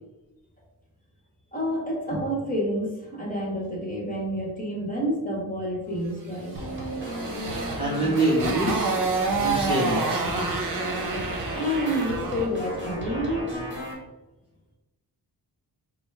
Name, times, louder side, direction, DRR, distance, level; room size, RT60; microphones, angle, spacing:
voice 1, 1.5-6.6 11.5-13.6, equal, 20° left, -3 dB, 1.4 m, -29 dB
Motorcycle, 6.5-12.6, right 4 dB, 55° right, 0.9 m, -29 dB
sound 1, 6.6-13.9, equal, 30° right, 1.2 m, -34 dB
voice 2, 7.8-9.0 9.4-10.5, right 1 dB, 15° right, -6 dB, 0.8 m, -26 dB
4.2 x 2.2 x 4.6 m, 1.1 s
wide cardioid pair, 120°, 39 cm